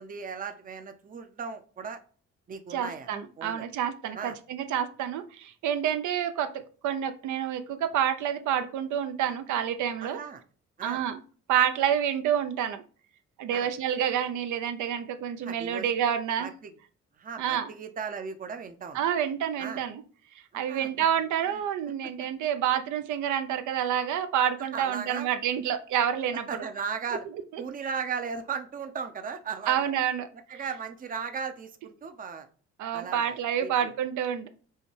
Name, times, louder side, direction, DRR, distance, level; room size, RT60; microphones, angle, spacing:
voice 1, 0.0-2.0 2.5-3.1 3.4-3.7 4.1-4.4 10.0-10.4 10.8-11.0 13.5-13.7 15.4-15.9 16.4-16.7 17.2-19.0 19.6-19.8 20.5-20.9 21.5-21.6 22.0-22.1 24.6-25.3 26.5-27.3 27.6-29.9 30.5-32.5 32.9-33.9, right 6 dB, 30° right, 7 dB, 0.5 m, -37 dB
voice 2, 2.7-10.2 10.8-11.2 11.5-12.8 13.4-16.5 17.4-17.7 18.9-20.0 20.5-26.4 27.5-27.6 29.7-30.3 32.8-34.5, right 9 dB, 75° right, 9 dB, 0.5 m, -28 dB
5.4 x 2.2 x 3.2 m, 0.41 s
cardioid pair, 90°, 30 cm